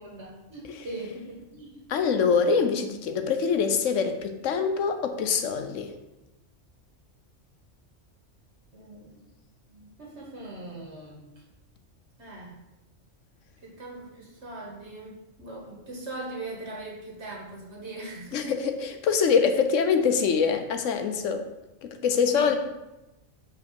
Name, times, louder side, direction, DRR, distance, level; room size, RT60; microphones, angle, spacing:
voice 1, 0.0-1.8 8.7-9.2 9.7-11.4 12.2-12.6 13.6-18.5 22.1-22.6, right 2 dB, 65° right, -2 dB, 1.9 m, -40 dB
voice 2, 1.9-5.9 18.3-21.4 21.8-22.6, left 6 dB, 85° left, 7 dB, 1.1 m, -24 dB
5.2 x 5.0 x 6.5 m, 0.99 s
omnidirectional pair, 1.3 m